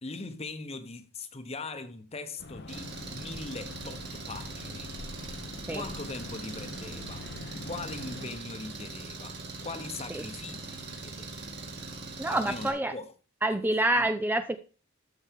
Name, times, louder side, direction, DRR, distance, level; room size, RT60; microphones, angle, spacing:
voice 1, 0.0-4.9 5.7-7.3 7.6-11.5 12.3-13.1 13.5-13.6 14.0-14.1, left 3 dB, 30° left, 1.0 m, -41 dB
sound 1, 2.4-8.3, left 2 dB, 55° left, 0.8 m, -44 dB
Engine, 2.7-12.7, right 3 dB, 55° right, 2.6 m, -41 dB
voice 2, 12.2-12.9 13.4-14.6, right 1 dB, 10° right, 0.5 m, -27 dB
13.0 x 6.1 x 3.6 m
head